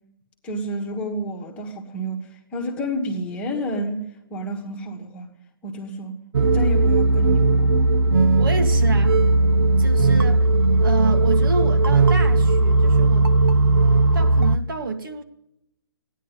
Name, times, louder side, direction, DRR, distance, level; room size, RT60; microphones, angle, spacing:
voice 1, 0.4-4.0 4.3-5.3 5.6-7.8, equal, 10° left, 1.5 m, -30 dB
sound 1, 6.3-14.6, right 2 dB, 85° right, 1.0 m, -17 dB
voice 2, 8.4-9.2 9.8-10.5 10.8-13.3 14.1-15.2, right 3 dB, 70° right, 2.1 m, -28 dB
15.0 x 10.0 x 9.0 m
hypercardioid pair, 165°, 12 cm